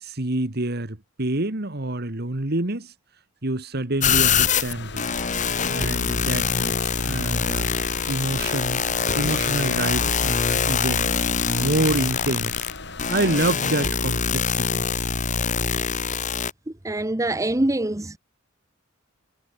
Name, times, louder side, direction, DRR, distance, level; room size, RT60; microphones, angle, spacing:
voice 1, 0.0-2.9 3.4-5.1 5.7-7.7 8.1-8.8 9.1-11.1 11.5-12.5 13.1-14.9, right 2 dB, 55° right, 2.0 m, -27 dB
sound 1, 4.0-13.6, left 3 dB, 60° left, 6.0 m, -38 dB
sound 2, 4.0-16.5, left 6 dB, 40° left, 1.8 m, -24 dB
voice 2, 16.8-18.2, right 1 dB, 15° right, 0.8 m, -24 dB
head